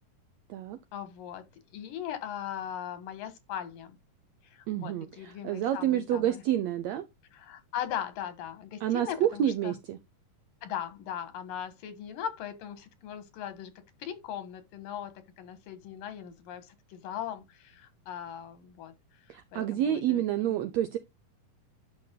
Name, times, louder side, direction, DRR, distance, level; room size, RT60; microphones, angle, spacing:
voice 1, 0.9-1.4 1.7-4.0 4.5-6.4 7.3-9.8 10.6-13.7 14.0-18.9 19.5-20.5, left 9 dB, 80° left, 3.1 m, -39 dB
voice 2, 4.7-7.0 8.8-10.0 19.3-21.0, right 11 dB, 85° right, 1.5 m, -29 dB
10.5 x 6.8 x 2.3 m
omnidirectional pair, 3.9 m